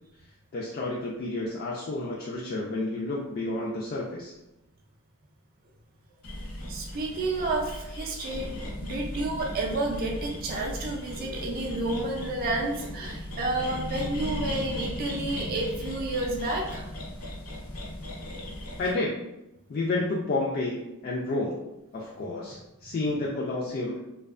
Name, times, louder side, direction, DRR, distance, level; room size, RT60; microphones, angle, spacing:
voice 1, 0.5-4.3 18.8-19.1 19.7-21.6 21.9-24.0, left 2 dB, 45° left, -4 dB, 0.3 m, -30 dB
sound 1, 6.2-18.9, left 1 dB, 75° left, 0.6 m, -37 dB
voice 2, 6.7-16.9, right 2 dB, 40° right, -1 dB, 0.3 m, -30 dB
2.6 x 2.2 x 2.4 m, 0.93 s
head